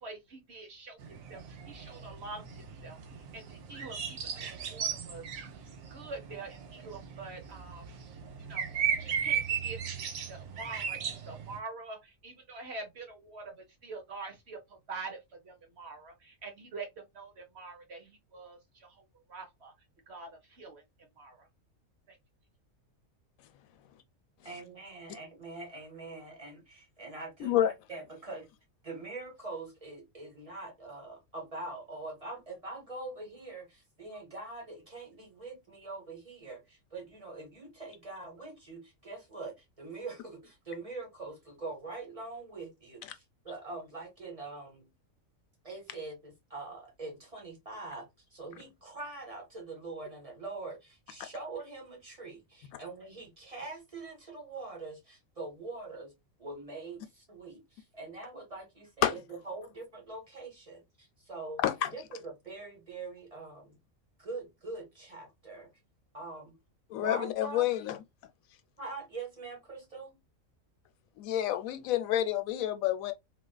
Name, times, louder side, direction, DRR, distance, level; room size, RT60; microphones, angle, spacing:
voice 1, 0.0-3.0 3.3-5.2 5.9-7.8 8.5-13.6 13.8-15.2 15.4-19.7 20.1-20.8 21.2-21.5 22.1-22.2, right 3 dB, 55° right, 1.1 m, -45 dB
sound 1, 1.0-11.6, right 7 dB, 80° right, 1.1 m, -37 dB
voice 2, 24.4-28.5 28.8-44.9 45.6-56.1 56.4-61.6 61.9-63.8 64.2-65.7 66.1-66.6 66.9-67.6 68.8-70.2, right 3 dB, 25° right, 1.1 m, -43 dB
voice 3, 66.9-68.0 71.2-73.1, left 11 dB, 85° left, 1.0 m, -28 dB
4.1 x 2.4 x 2.2 m
omnidirectional pair, 1.4 m